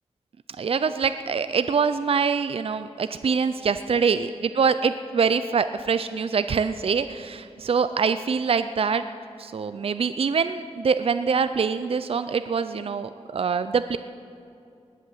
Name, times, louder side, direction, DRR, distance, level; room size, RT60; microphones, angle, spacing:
voice 1, 0.6-9.0 9.4-14.0, right 5 dB, 55° right, 11 dB, 0.5 m, -24 dB
20.0 x 8.4 x 7.7 m, 2.5 s
wide cardioid pair, 95°, 11 cm